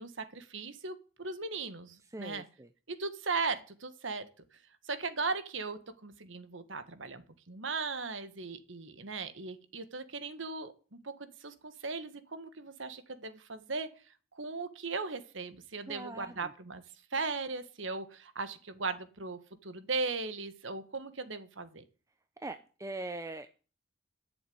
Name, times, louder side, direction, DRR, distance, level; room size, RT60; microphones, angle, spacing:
voice 1, 0.0-2.4 2.9-4.3 4.9-13.9 14.3-16.8 17.1-21.8, right 4 dB, 70° right, 11 dB, 1.5 m, -38 dB
voice 2, 2.1-2.7 15.9-16.5 22.4-23.5, right 2 dB, 15° right, 9 dB, 0.6 m, -42 dB
11.5 x 7.0 x 9.4 m, 0.37 s
head